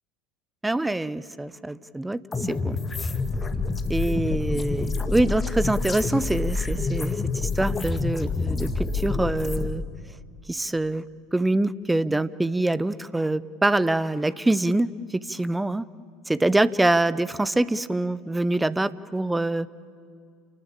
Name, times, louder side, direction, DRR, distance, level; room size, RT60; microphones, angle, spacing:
voice 1, 0.6-3.1 3.9-9.8 10.5-11.0 11.3-15.9 16.3-19.7, right 2 dB, 10° right, 18 dB, 0.7 m, -25 dB
sound 1, 2.3-9.7, left 4 dB, 20° left, 2.0 m, -27 dB
29.0 x 19.5 x 8.8 m, 2.3 s
figure-of-eight pair, 70°, 0 cm